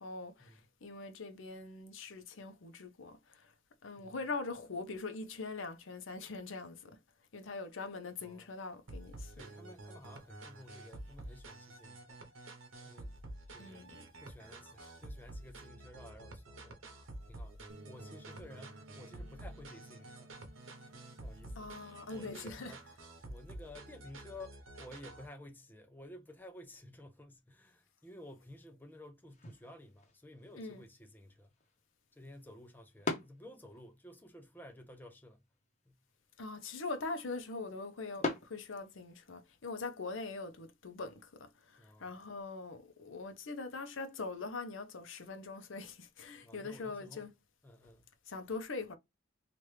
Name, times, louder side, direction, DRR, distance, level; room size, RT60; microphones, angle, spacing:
voice 1, 0.0-3.5 3.8-7.0 7.3-9.3 13.6-14.0 21.6-22.8 30.6-30.8 36.4-47.3 48.3-49.0, left 3 dB, 75° left, 0.7 m, -42 dB
voice 2, 8.2-8.5 9.3-12.6 12.8-13.1 13.5-13.8 14.2-20.4 21.1-22.9 23.3-31.6 32.1-35.4 35.9-36.0 41.8-42.1 46.4-47.3 47.6-48.1, left 1 dB, 10° left, 0.5 m, -54 dB
sound 1, 8.9-25.3, right 1 dB, 90° right, 0.9 m, -49 dB
sound 2, 17.7-22.7, equal, 50° right, 0.6 m, -58 dB
sound 3, 29.3-39.3, left 3 dB, 35° left, 0.8 m, -45 dB
3.0 x 2.5 x 3.2 m
head